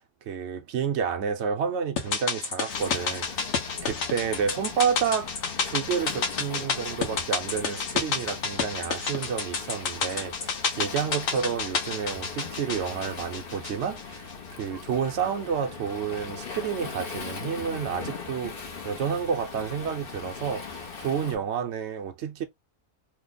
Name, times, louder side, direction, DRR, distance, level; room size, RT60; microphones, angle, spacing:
voice 1, 0.3-3.6 3.8-5.3 5.6-14.3 14.6-22.4, right 7 dB, 60° right, 0.8 m, -30 dB
sound 1, 2.0-14.3 14.6-14.7, left 5 dB, 65° left, 1.3 m, -30 dB
Waves surf, 2.7-21.4, left 5 dB, 45° left, 0.8 m, -40 dB
3.1 x 2.1 x 3.9 m
omnidirectional pair, 1.6 m